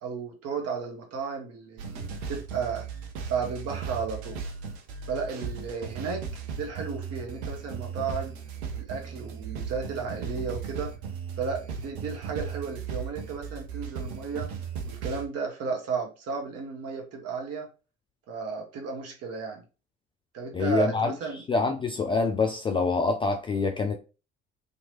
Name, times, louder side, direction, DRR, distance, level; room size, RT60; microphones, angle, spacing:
voice 1, 0.0-2.8 3.3-4.5 5.1-6.2 6.6-8.3 8.7-10.9 11.4-14.5 14.8-17.7 18.3-19.6 20.3-21.4, right 5 dB, 45° right, 1.0 m, -33 dB
sound 1, 1.8-15.3, right 6 dB, 70° right, 0.7 m, -36 dB
voice 2, 20.5-23.9, left 4 dB, 15° left, 0.3 m, -26 dB
2.9 x 2.5 x 2.8 m
figure-of-eight pair, 55°, 33 cm